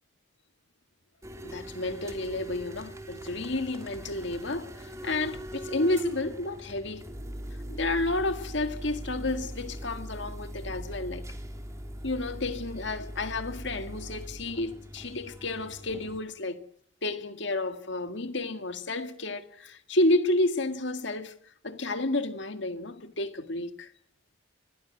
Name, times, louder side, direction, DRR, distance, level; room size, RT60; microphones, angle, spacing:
sound 1, 1.2-16.2, equal, 15° right, 2.8 m, -41 dB
voice 1, 1.4-7.1 7.7-11.2 12.0-16.6 17.0-21.4 21.6-23.9, left 2 dB, 60° left, 2.0 m, -31 dB
28.0 x 21.0 x 6.2 m
head